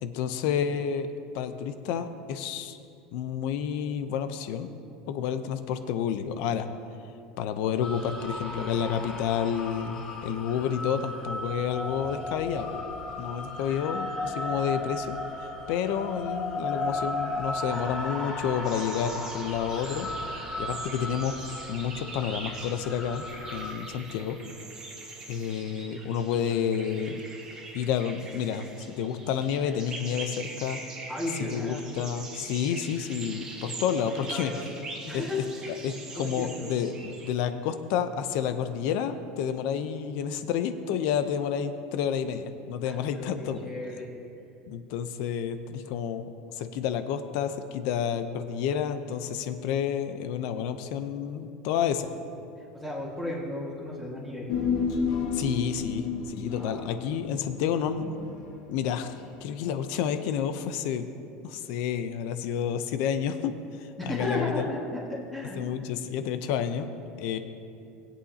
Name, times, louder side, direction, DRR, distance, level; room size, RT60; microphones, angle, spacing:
voice 1, 0.0-2.8 3.1-4.7 5.1-6.7 7.4-12.8 13.2-20.1 20.6-21.4 21.7-23.2 23.5-24.4 25.3-27.2 27.7-30.8 31.5-34.5 35.1-35.2 35.8-43.7 44.7-46.3 46.5-52.1 55.3-58.1 58.7-61.1 61.4-64.7 65.6-66.9 67.2-67.4, left 8 dB, 60° left, 9 dB, 0.7 m, -30 dB
sound 1, 7.8-23.7, left 2 dB, 25° left, 1.5 m, -35 dB
sound 2, 18.6-37.3, right 3 dB, 20° right, 1.4 m, -43 dB
voice 2, 31.1-31.9 33.9-34.6 35.1-35.4 36.2-36.7 42.8-44.1 52.7-54.5 56.6-56.8 64.0-65.6, left 1 dB, 5° left, -6 dB, 1.7 m, -34 dB
Human voice, 54.5-59.1 59.4-59.5, left 5 dB, 85° left, 1.5 m, -31 dB
20.5 x 8.4 x 2.8 m, 2.7 s
cardioid pair, 165°, 3 cm